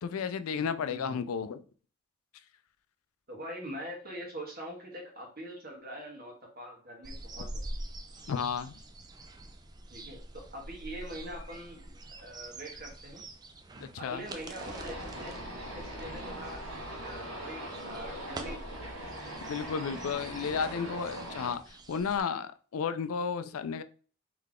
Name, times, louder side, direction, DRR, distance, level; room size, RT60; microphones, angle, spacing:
voice 1, 0.0-1.6 8.3-8.7 13.8-14.2 19.5-21.6 21.9-23.8, left 6 dB, 75° left, 0.4 m, -33 dB
voice 2, 0.9-1.2 3.3-7.6 9.9-13.2 14.0-16.6 17.0-18.7 20.5-21.0, right 1 dB, 45° right, 1.5 m, -44 dB
sound 1, 7.0-22.2, right 1 dB, 20° right, 0.4 m, -45 dB
sound 2, 14.6-21.5, right 1 dB, 75° right, 1.6 m, -41 dB
3.8 x 3.2 x 3.6 m
head